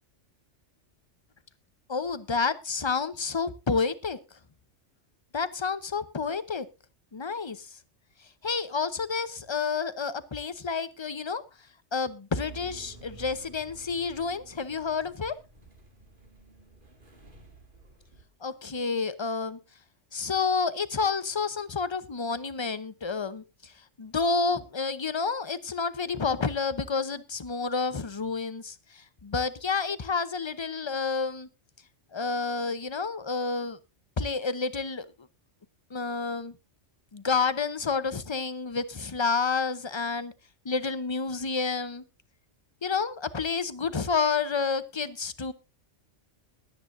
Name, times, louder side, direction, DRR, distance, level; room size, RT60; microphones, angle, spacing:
voice 1, 1.9-4.2 5.3-6.7 7.1-7.8 8.4-11.4 11.9-15.4 18.4-19.6 20.1-23.7 24.0-31.5 32.1-33.8 34.2-35.1 35.9-36.5 37.1-40.3 40.6-42.0 42.8-45.5, left 4 dB, 25° left, 14 dB, 0.7 m, -29 dB
sound 1, 12.3-18.3, right 4 dB, 45° right, 2.5 m, -50 dB
22.0 x 9.1 x 2.6 m, 0.27 s
omnidirectional pair, 1.3 m